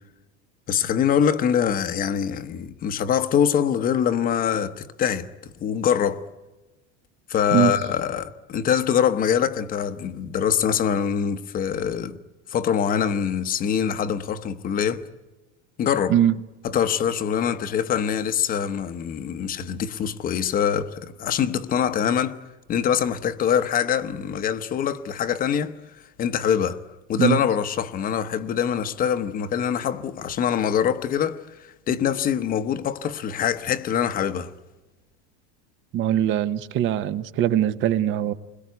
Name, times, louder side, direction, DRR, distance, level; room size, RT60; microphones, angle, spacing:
voice 1, 0.7-5.3 5.6-6.2 7.3-12.2 12.5-15.0 15.8-16.1 16.6-22.4 22.7-25.8 26.2-26.8 27.1-34.5, left 8 dB, 25° left, 0.9 m, -24 dB
voice 2, 35.9-38.3, right 11 dB, 35° right, 0.9 m, -21 dB
29.5 x 21.5 x 9.4 m
cardioid pair, 170°, 34 cm